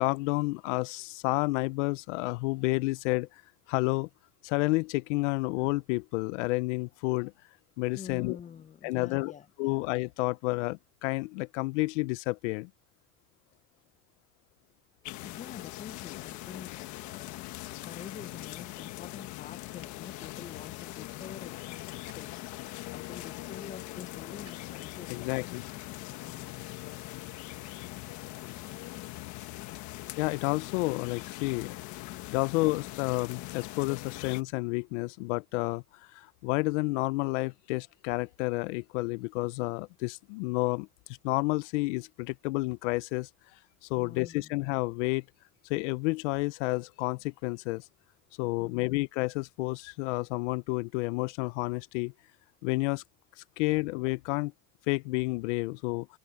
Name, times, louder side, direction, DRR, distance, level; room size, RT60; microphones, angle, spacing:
voice 1, 0.0-3.3 3.7-4.1 4.4-7.3 7.8-8.4 8.8-9.3 9.6-12.7 25.1-25.6 30.2-31.8 32.3-40.9 41.2-43.3 43.8-45.2 45.7-47.8 48.4-52.1 52.6-53.0 53.6-54.5 54.9-56.1, left 23 dB, 90° left, 0.5 m, -30 dB
voice 2, 7.9-9.8 13.5-13.6 15.2-21.6 22.1-25.6 43.9-44.5 48.4-49.1 53.5-53.6, left 8 dB, 20° left, 0.8 m, -47 dB
sound 1, 15.0-34.4, left 18 dB, 55° left, 1.3 m, -41 dB
sound 2, 20.2-25.2, right 30 dB, 80° right, 6.8 m, -67 dB
supercardioid pair, 135°, 35 cm